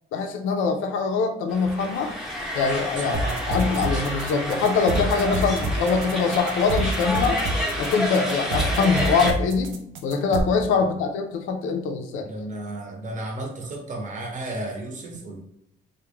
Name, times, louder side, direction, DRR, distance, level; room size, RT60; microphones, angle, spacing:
voice 1, 0.1-2.1 2.5-3.2 3.5-7.4 7.8-9.7 10.0-12.3, left 5 dB, 85° left, 5 dB, 0.4 m, -23 dB
sound 1, 1.5-9.3, left 1 dB, ahead, 0.6 m, -29 dB
voice 2, 3.0-3.7 5.3-5.6 10.8-10.9 12.2-15.4, right 2 dB, 40° right, 1 dB, 0.7 m, -33 dB
sound 2, 3.1-10.4, right 2 dB, 80° right, 0.5 m, -28 dB
2.3 x 2.1 x 3.0 m, 0.78 s
cardioid pair, 90°, 20 cm